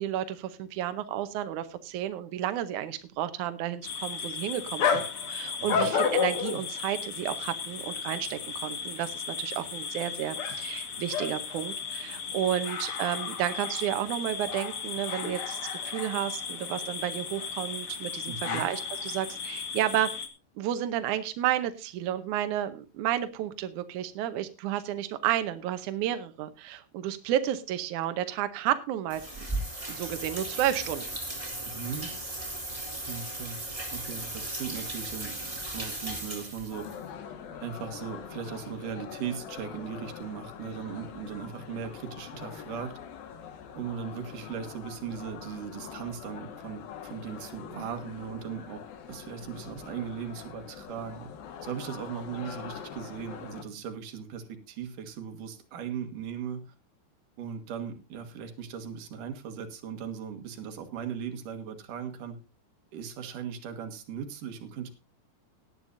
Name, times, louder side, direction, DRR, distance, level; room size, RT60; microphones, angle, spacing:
voice 1, 0.0-20.1 20.6-29.3 29.9-31.0, right 12 dB, 75° right, 9 dB, 1.8 m, -31 dB
sound 1, 3.8-20.3, left 6 dB, 55° left, 1.6 m, -33 dB
voice 2, 5.6-5.9 18.3-18.7 31.6-32.1 33.1-33.6 33.9-36.9 37.6-43.0 43.7-48.8 49.1-51.3 51.6-56.7 57.4-62.4 62.9-64.9, right 7 dB, 60° right, 7 dB, 2.8 m, -38 dB
sound 2, 29.1-37.0, right 1 dB, 10° right, 3.1 m, -36 dB
sound 3, 36.7-53.6, left 8 dB, 70° left, 3.1 m, -44 dB
18.0 x 11.0 x 2.6 m, 0.28 s
omnidirectional pair, 4.7 m